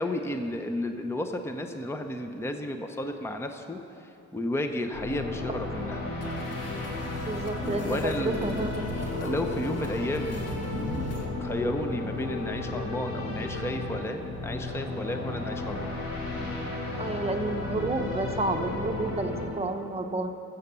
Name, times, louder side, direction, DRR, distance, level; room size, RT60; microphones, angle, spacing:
voice 1, 0.0-3.8 4.3-6.0 7.8-8.7 9.2-10.5 11.4-15.9, left 1 dB, 10° left, 6 dB, 0.7 m, -32 dB
sound 1, 4.9-19.5, left 2 dB, 85° left, 2.3 m, -33 dB
sound 2, 6.2-11.3, left 1 dB, 55° left, 1.9 m, -40 dB
voice 2, 7.3-8.8 17.0-20.3, right 2 dB, 20° right, 5 dB, 0.9 m, -30 dB
14.5 x 7.2 x 6.8 m, 2.9 s
cardioid pair, 90°, 30 cm